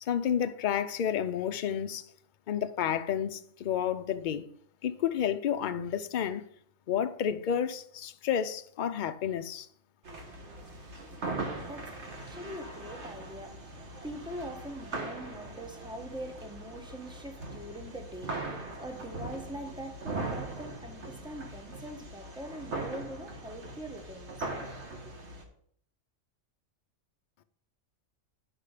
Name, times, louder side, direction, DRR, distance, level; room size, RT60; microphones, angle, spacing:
voice 1, 0.0-2.1 2.5-4.4 4.8-6.4 6.9-9.7, left 9 dB, 60° left, 0.5 m, -30 dB
sound 1, 10.0-25.4, right 2 dB, 60° right, 1.6 m, -40 dB
voice 2, 11.2-24.5 25.0-25.1, right 1 dB, 5° right, 1.0 m, -43 dB
10.0 x 5.4 x 4.9 m
omnidirectional pair, 1.4 m